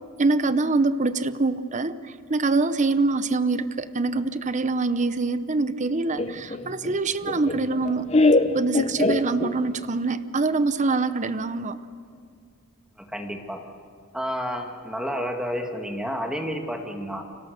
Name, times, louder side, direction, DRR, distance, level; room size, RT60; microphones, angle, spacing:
voice 1, 0.2-8.1 8.5-11.8, right 3 dB, 35° right, 13 dB, 0.8 m, -24 dB
Laughter, 6.2-9.8, left 2 dB, 30° left, 0.7 m, -23 dB
voice 2, 13.0-13.6 14.1-17.2, equal, 5° right, 3 dB, 1.9 m, -30 dB
30.0 x 24.5 x 6.6 m, 2.2 s
head